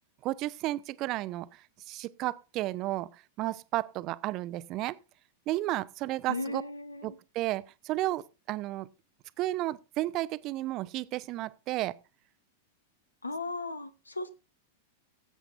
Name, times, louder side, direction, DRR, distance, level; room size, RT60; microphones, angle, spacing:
voice 1, 0.2-5.0 5.5-6.6 7.0-8.9 9.4-11.9, right 16 dB, 40° right, 0.6 m, -33 dB
voice 2, 6.3-7.2 13.2-14.3, left 2 dB, 85° left, 0.7 m, -36 dB
19.5 x 8.1 x 2.6 m
figure-of-eight pair, 95°, 0 cm